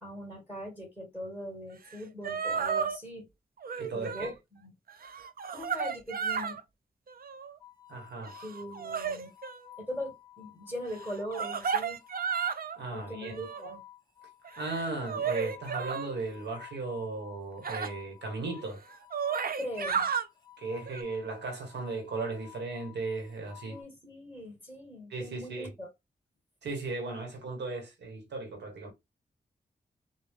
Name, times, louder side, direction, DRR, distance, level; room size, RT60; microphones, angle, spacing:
voice 1, 0.0-3.3 3.9-4.7 5.5-6.6 8.4-9.3 9.8-12.0 12.9-13.8 19.6-20.1 23.6-25.9, equal, 10° right, 2.6 m, -40 dB
sound 1, 1.9-2.0 2.2-3.0 3.6-4.3 4.9-6.6 7.1-7.6 8.2-9.6 11.0-12.8 13.2-13.8 14.4-16.1 17.6-17.9 18.6-18.7 18.9-20.3 20.9-21.0, right 6 dB, 60° right, 0.5 m, -33 dB
voice 2, 3.8-4.3 7.9-8.3 12.7-13.3 14.6-18.8 20.6-23.8 25.1-25.7 26.6-28.9, right 3 dB, 90° right, 1.5 m, -36 dB
sound 2, 7.6-23.8, left 13 dB, 25° left, 1.0 m, -53 dB
3.6 x 2.6 x 3.5 m
cardioid pair, 45°, 17 cm